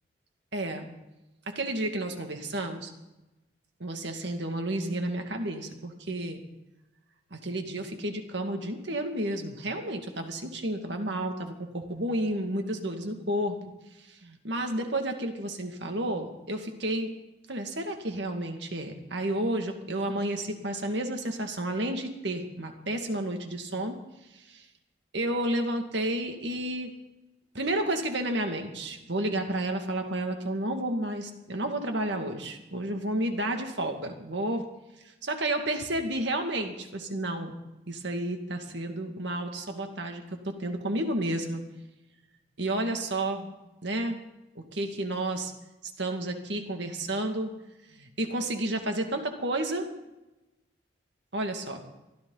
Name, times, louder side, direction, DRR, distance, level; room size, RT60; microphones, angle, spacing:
voice 1, 0.5-0.9 1.5-2.9 3.8-6.4 7.3-13.6 14.0-17.1 17.5-24.0 24.3-24.7 25.1-26.9 27.5-34.7 35.2-37.6 37.9-41.6 42.6-43.5 43.8-44.2 44.6-45.5 46.0-47.5 47.9-49.9 51.3-51.8, right 1 dB, 65° right, 4 dB, 2.2 m, -31 dB
23.5 x 14.0 x 4.0 m, 0.99 s
head